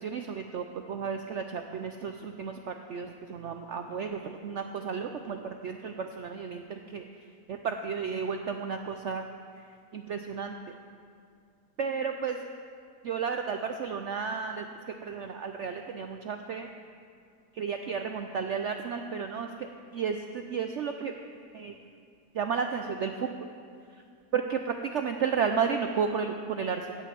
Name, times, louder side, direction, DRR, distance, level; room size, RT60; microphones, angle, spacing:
voice 1, 0.0-5.4 5.6-7.0 7.5-9.2 9.9-10.6 11.8-12.4 13.0-14.6 15.0-16.7 17.6-21.1 21.5-21.7 22.4-23.3 24.3-26.8, right 6 dB, 70° right, 6 dB, 0.6 m, -32 dB
16.5 x 5.6 x 7.5 m, 2.3 s
omnidirectional pair, 1.8 m